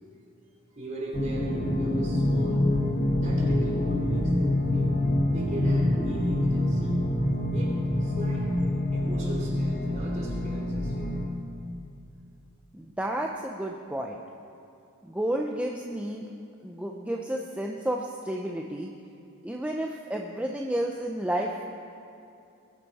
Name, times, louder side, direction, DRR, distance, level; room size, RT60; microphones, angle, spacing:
voice 1, 0.7-2.7 3.2-5.0 5.3-7.0 7.5-8.5 8.9-11.1, right 1 dB, 35° right, -3 dB, 3.4 m, -38 dB
sound 1, 1.1-11.3, left 1 dB, 35° left, 1.4 m, -26 dB
voice 2, 12.7-14.2 15.0-16.3 16.6-18.9 19.4-21.6, right 1 dB, 5° right, 0 dB, 0.6 m, -31 dB
20.0 x 10.5 x 4.2 m, 2.7 s
head